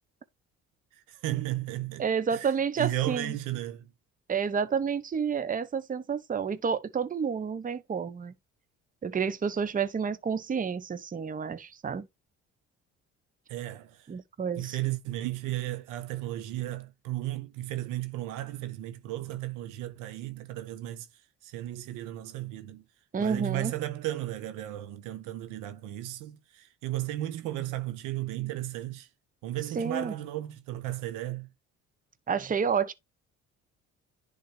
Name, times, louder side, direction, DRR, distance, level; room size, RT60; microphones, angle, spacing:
voice 1, 1.1-2.1 2.3-2.5 2.8-3.9 13.5-14.1 14.5-21.1 21.4-22.8 23.2-29.1 29.4-31.5, right 15 dB, 80° right, 1.0 m, -34 dB
voice 2, 2.0-3.3 4.3-8.3 9.0-12.1 14.1-14.8 23.1-23.7 29.8-30.1 32.3-32.9, right 6 dB, 25° right, 0.8 m, -30 dB
10.5 x 4.0 x 3.3 m
supercardioid pair, 70°, 31 cm